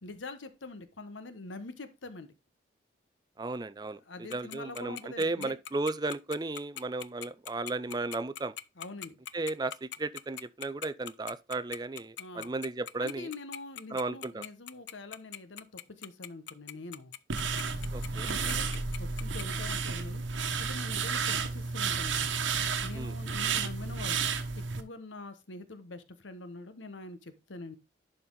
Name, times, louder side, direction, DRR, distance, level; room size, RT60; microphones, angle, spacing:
voice 1, 0.0-2.3 4.1-5.6 8.8-9.2 12.2-12.5 13.0-17.1 18.0-20.2 20.6-22.3 22.8-24.2 24.5-27.8, left 2 dB, 85° left, 1.1 m, -45 dB
voice 2, 3.4-8.5 9.3-13.3 13.9-14.4 17.9-18.3 22.9-23.2, right 2 dB, 20° right, 0.4 m, -35 dB
Tick-tock, 4.3-19.4, left 10 dB, 65° left, 0.5 m, -41 dB
sound 1, 17.3-24.8, right 5 dB, 85° right, 1.2 m, -32 dB
11.0 x 4.2 x 3.8 m
head